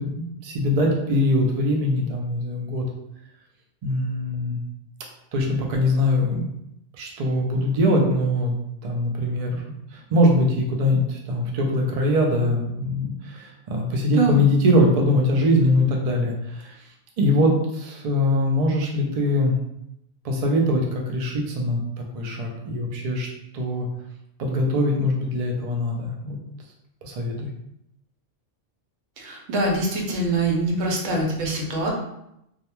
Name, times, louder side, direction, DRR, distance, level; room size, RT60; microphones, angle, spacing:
voice 1, 0.0-2.8 3.8-4.6 5.3-6.5 7.0-8.5 8.8-9.6 9.9-16.7 17.2-19.5 20.2-21.8 22.1-23.3 23.5-23.9 24.4-26.4 27.0-27.5, left 1 dB, 60° right, 0 dB, 0.4 m, -22 dB
voice 2, 14.1-14.5 29.2-31.9, right 2 dB, 85° right, 0 dB, 1.0 m, -24 dB
2.4 x 2.1 x 2.9 m, 0.80 s
omnidirectional pair, 1.2 m